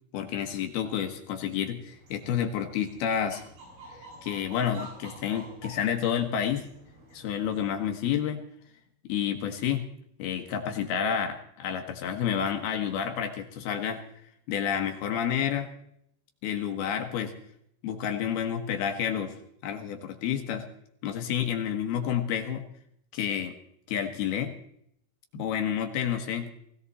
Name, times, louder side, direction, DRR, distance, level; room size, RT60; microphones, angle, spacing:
voice 1, 0.1-3.4 4.0-6.7 7.1-8.4 9.1-9.8 10.2-14.0 14.5-15.7 16.4-17.3 17.8-20.7 21.0-22.6 23.1-23.5 23.9-24.5 25.3-26.5, left 8 dB, 70° left, 5 dB, 2.8 m, -29 dB
sound 1, 1.9-7.8, right 1 dB, 60° right, 8.9 m, -49 dB
19.5 x 17.5 x 4.1 m, 0.70 s
omnidirectional pair, 5.3 m